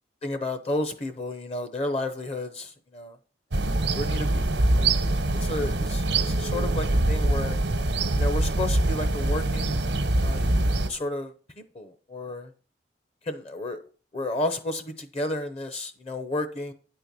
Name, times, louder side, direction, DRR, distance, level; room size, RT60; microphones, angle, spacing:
voice 1, 0.2-3.2 3.9-4.5 4.8-7.6 8.2-9.8 10.2-10.5 10.9-11.3 11.7-12.5 13.2-13.8 14.1-16.7, left 1 dB, 35° left, 0.8 m, -32 dB
sound 1, 3.5-10.9, right 2 dB, 85° right, 1.1 m, -24 dB
9.6 x 4.4 x 6.8 m
head